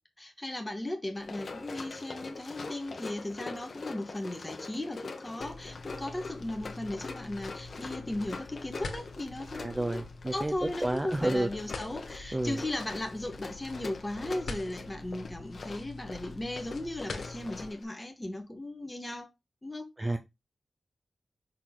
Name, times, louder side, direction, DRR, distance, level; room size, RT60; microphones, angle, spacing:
voice 1, 0.2-10.0 10.3-19.3 19.6-19.8, left 1 dB, 15° left, 1.5 m, -37 dB
Run, 1.1-17.8, left 3 dB, 50° left, 1.2 m, -43 dB
sound 1, 5.4-17.7, left 3 dB, 85° left, 1.5 m, -45 dB
voice 2, 9.5-10.5 10.8-11.5 12.3-12.6 20.0-20.2, right 1 dB, 15° right, 0.6 m, -30 dB
6.2 x 4.6 x 3.7 m
wide cardioid pair, 170°, 0 cm